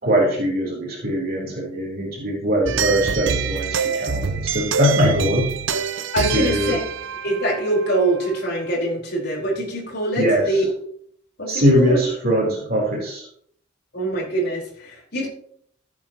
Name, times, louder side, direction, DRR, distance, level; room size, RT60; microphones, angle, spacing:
voice 1, 0.0-5.5 6.3-6.7 10.2-10.5 11.5-13.2, equal, 45° right, -3 dB, 3.6 m, -21 dB
sound 1, 2.6-8.4, right 6 dB, 60° right, 0.7 m, -25 dB
voice 2, 6.1-6.8 7.2-10.6 11.4-12.0 13.9-15.3, right 1 dB, 50° left, -2 dB, 4.6 m, -24 dB
14.5 x 8.8 x 3.0 m, 0.63 s
head